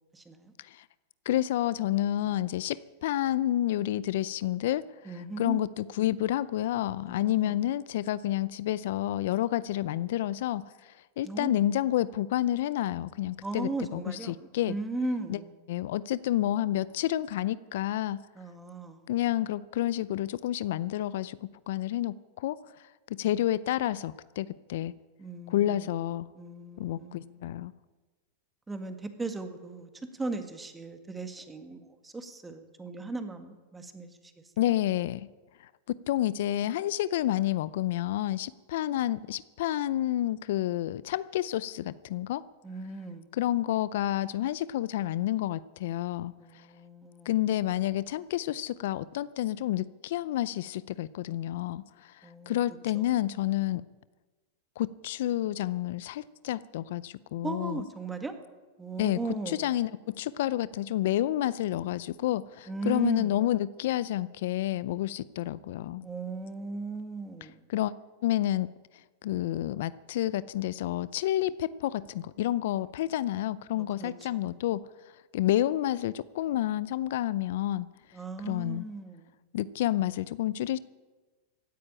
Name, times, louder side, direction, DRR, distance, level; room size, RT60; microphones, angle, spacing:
voice 1, 0.1-0.5 5.1-5.6 7.1-7.6 11.2-11.6 13.4-15.5 18.4-19.1 25.2-26.0 26.4-27.4 28.7-34.3 42.6-43.3 46.4-47.3 52.2-52.6 52.9-53.0 57.4-58.3 58.8-59.7 62.7-63.4 66.0-67.7 73.7-74.4 78.1-79.4, right 3 dB, 10° right, 7 dB, 1.9 m, -37 dB
voice 2, 1.3-14.8 15.3-15.4 15.7-18.2 19.1-22.6 23.1-24.9 25.5-26.3 26.8-27.7 34.6-35.3 35.6-42.4 43.3-46.7 47.3-53.8 54.8-57.8 59.0-59.2 59.5-66.1 67.7-67.9 68.2-68.7 69.2-74.8 75.3-77.9 78.4-78.9 79.5-80.8, left 13 dB, 65° left, 18 dB, 0.4 m, -29 dB
16.0 x 9.5 x 8.8 m, 1.3 s
hypercardioid pair, 110°, 0 cm